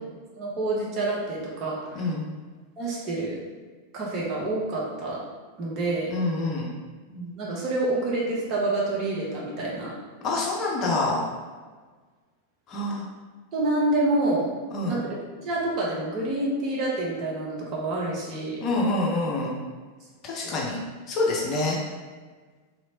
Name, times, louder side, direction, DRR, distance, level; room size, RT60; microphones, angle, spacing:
voice 1, 0.4-2.0 2.8-3.4 3.9-5.2 5.6-6.1 7.1-9.9 13.5-14.5 14.9-15.2 15.4-18.6, right 2 dB, 35° right, -4 dB, 0.9 m, -27 dB
voice 2, 1.9-2.3 6.1-6.7 10.2-11.2 12.7-13.0 14.7-15.0 18.6-19.6 20.2-20.8 21.1-21.8, left 2 dB, 35° left, -3 dB, 0.8 m, -26 dB
3.1 x 3.0 x 2.8 m, 1.4 s
figure-of-eight pair, 90°, 0 cm